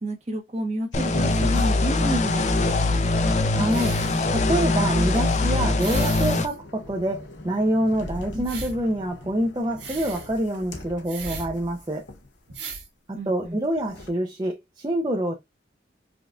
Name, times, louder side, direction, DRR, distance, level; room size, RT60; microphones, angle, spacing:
voice 1, 0.0-3.0 8.3-8.5 13.1-13.6, right 1 dB, 40° right, 1.2 m, -30 dB
sound 1, 0.9-2.1 2.5-12.7 13.4-14.1, left 1 dB, 85° left, 0.8 m, -41 dB
sound 2, 0.9-6.5, left 2 dB, 40° left, 0.4 m, -22 dB
sound 3, 1.5-1.7 2.7-3.1 3.6-4.3 5.2-5.3 5.8-6.6 6.8-6.9 8.4-8.8 9.8-10.3 11.1-11.5 12.1-12.2 12.5-12.9 13.8-13.9, right 4 dB, 85° right, 1.5 m, -37 dB
voice 2, 3.5-4.0 4.3-12.1 13.1-15.3, right 1 dB, 20° right, 0.5 m, -26 dB
5.0 x 2.5 x 2.3 m
head